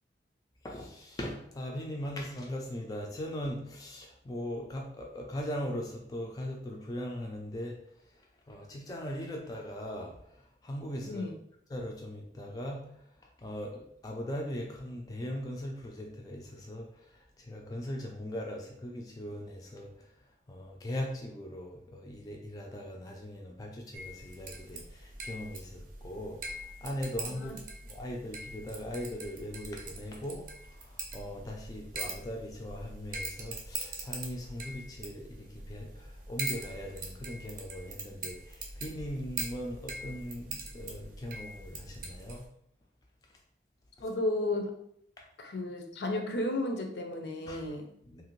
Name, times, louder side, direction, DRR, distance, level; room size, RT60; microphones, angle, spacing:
voice 1, 0.6-7.8 8.0-11.2 11.7-20.1 20.5-27.5 27.9-42.4 45.2-45.3 47.5-47.8 48.0-48.2, equal, 20° left, 0 dB, 0.3 m, -40 dB
sound 1, 23.9-42.5, right 3 dB, 50° right, 0.5 m, -42 dB
voice 2, 44.0-44.7 45.4-47.9, left 2 dB, 70° left, 4 dB, 0.5 m, -33 dB
2.9 x 2.4 x 3.0 m, 0.69 s
head